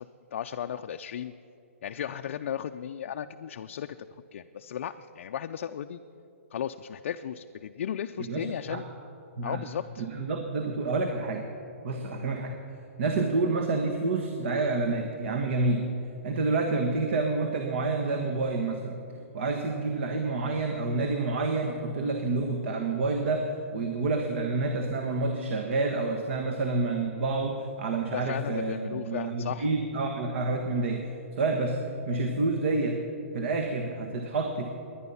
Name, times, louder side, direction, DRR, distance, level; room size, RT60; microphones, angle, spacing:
voice 1, 0.0-1.3 1.8-4.0 4.3-6.0 6.5-8.9 9.4-10.0 28.1-29.7, left 9 dB, 60° left, 6 dB, 0.4 m, -35 dB
voice 2, 8.2-8.8 9.4-9.6 10.0-11.5 11.8-12.6 13.0-15.9 16.2-19.0 19.3-31.0 31.4-31.8 32.1-33.0 33.3-34.7, right 3 dB, 55° right, 4 dB, 1.4 m, -28 dB
20.5 x 10.0 x 5.6 m, 2.8 s
hypercardioid pair, 155°, 8 cm